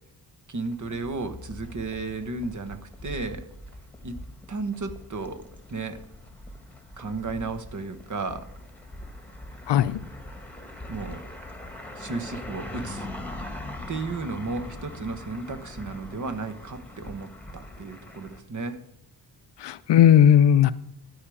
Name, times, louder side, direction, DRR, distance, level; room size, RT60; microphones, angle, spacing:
voice 1, 0.5-3.4 4.0-4.2 4.5-5.4 5.7-6.0 7.0-8.5 10.9-11.2 11.9-13.1 13.9-18.8, right 3 dB, 45° right, 9 dB, 1.3 m, -33 dB
sound 1, 0.6-18.4, left 1 dB, 5° left, 1.4 m, -42 dB
voice 2, 9.7-10.0 19.6-20.7, left 10 dB, 85° left, 14 dB, 0.7 m, -17 dB
12.5 x 5.0 x 8.5 m, 0.75 s
wide cardioid pair, 125°, 41 cm